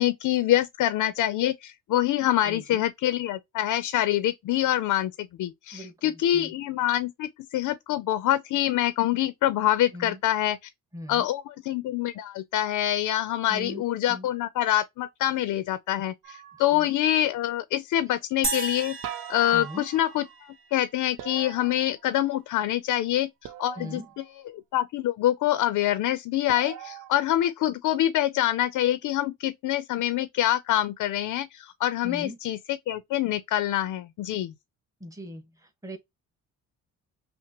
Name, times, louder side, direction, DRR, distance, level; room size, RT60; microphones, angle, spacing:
voice 1, 0.0-10.7 11.1-19.0 19.3-34.5, left 13 dB, 70° left, 0.5 m, -26 dB
voice 2, 2.4-2.8 5.7-6.5 9.9-10.2 10.9-11.3 13.5-13.8 14.1-14.3 16.7-16.9 19.5-19.8 23.8-24.1 32.0-32.4 35.0-35.4 35.8-36.0, equal, 10° right, 1.3 m, -39 dB
sound 1, 16.2-17.2 19.0-20.4 21.2-22.5 23.4-24.3 26.5-27.1, right 11 dB, 75° right, 0.6 m, -42 dB
sound 2, 18.4-20.9, right 4 dB, 40° right, 1.0 m, -34 dB
5.8 x 2.1 x 2.9 m
cardioid pair, 100°, 33 cm